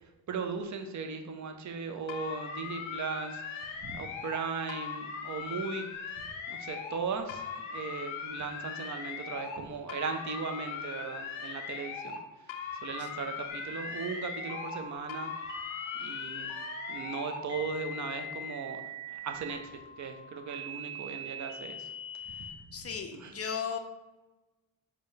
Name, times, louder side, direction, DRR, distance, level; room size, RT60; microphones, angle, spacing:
voice 1, 0.3-5.9 6.5-15.3 16.0-16.5 16.9-21.9 22.3-22.5 23.1-23.3, right 5 dB, 40° right, 6 dB, 0.6 m, -38 dB
sound 1, 2.1-4.4 4.7-7.0 7.3-9.6 9.9-12.2 12.5-14.8 15.1-17.4, left 6 dB, 75° left, 0.6 m, -39 dB
sound 2, 13.5-22.5, equal, 55° right, 1.0 m, -42 dB
voice 2, 22.7-23.8, left 7 dB, 30° left, 6 dB, 0.5 m, -36 dB
4.1 x 2.2 x 3.2 m, 1.1 s
supercardioid pair, 55°, 49 cm